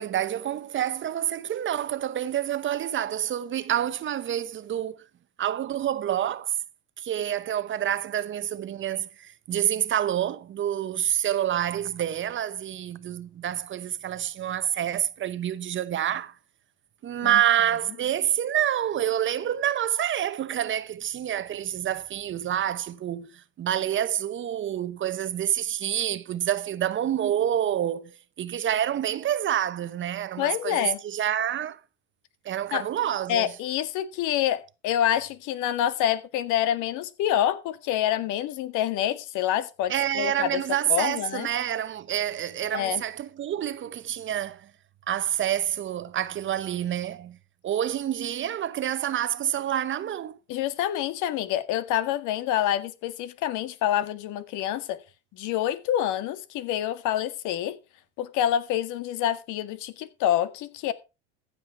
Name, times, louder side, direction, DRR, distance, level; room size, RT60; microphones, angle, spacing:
voice 1, 0.0-5.0 5.4-6.5 7.0-16.3 17.0-31.8 32.4-33.5 39.9-44.7 45.1-47.4 47.6-50.4, right 11 dB, 35° right, 0.9 m, -28 dB
voice 2, 30.4-31.0 32.7-32.8 33.3-40.6 40.9-41.5 42.7-43.0 50.5-55.0 55.3-57.8 58.2-60.9, left 11 dB, 65° left, 1.9 m, -27 dB
15.0 x 7.7 x 4.6 m
supercardioid pair, 105°, 33 cm